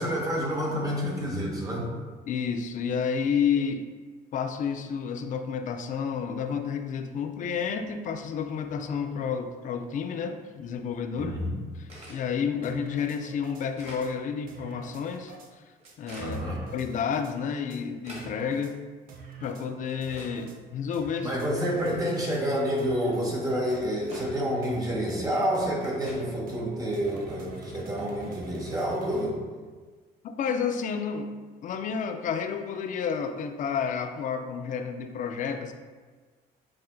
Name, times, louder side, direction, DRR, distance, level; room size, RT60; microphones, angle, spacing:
voice 1, 0.0-1.9 11.2-11.5 16.2-16.6 21.2-29.4, equal, 20° right, -3 dB, 0.9 m, -28 dB
voice 2, 2.3-3.9 4.3-11.3 12.1-15.3 16.0-16.4 16.7-18.8 19.4-21.4 30.2-31.3 31.6-35.7, left 6 dB, 50° left, 7 dB, 0.4 m, -30 dB
sound 1, 11.9-12.2 12.9-13.0 13.5-14.1 15.0-15.2 15.8-16.4 17.2-17.3 17.7-18.3 19.1-19.2 19.9-20.4 21.0-21.1 21.8-22.3 23.3-23.4 23.7-24.3 25.2-25.3 25.7-26.2, equal, 40° right, 1.2 m, -45 dB
sound 2, 12.6-13.6 14.0-14.1 14.5-15.5 15.9-16.0 16.3-17.3 17.7-17.8 18.2-18.7 19.1-19.6 20.0-20.6 20.9-21.5 21.9-22.4 22.8-23.3 23.7-23.8 24.2-24.3 24.6-24.8 25.1-25.2 25.5-25.7 26.0-26.1 26.5-26.6 26.9-29.2, right 6 dB, 55° right, 0.6 m, -46 dB
7.4 x 2.5 x 2.3 m, 1.4 s
cardioid pair, 110°, 17 cm